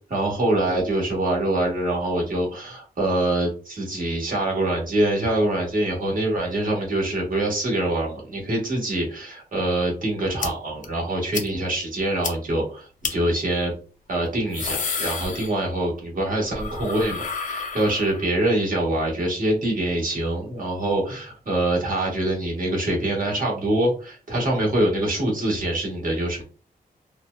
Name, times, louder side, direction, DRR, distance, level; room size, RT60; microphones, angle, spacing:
voice 1, 0.1-13.8 14.1-26.4, right 1 dB, 55° right, -1 dB, 1.1 m, -24 dB
sound 1, 10.4-10.5 10.8-10.9 11.3-11.5 11.8-11.9 12.2-12.3 13.0-13.1 14.3-15.9 16.2-18.4, left 5 dB, 50° left, 0.4 m, -30 dB
2.8 x 2.0 x 2.2 m, 0.36 s
wide cardioid pair, 110°, 16 cm